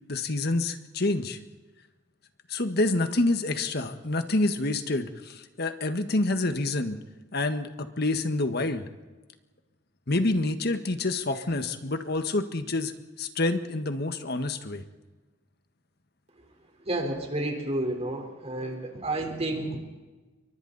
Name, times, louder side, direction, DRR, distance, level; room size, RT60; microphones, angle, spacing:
voice 1, 0.1-1.4 2.5-7.0 7.3-8.9 10.1-12.9 13.2-14.8, left 2 dB, 55° left, 8 dB, 1.6 m, -27 dB
voice 2, 16.9-19.8, right 1 dB, 35° right, 3 dB, 4.2 m, -30 dB
29.5 x 24.0 x 4.2 m, 1.2 s
head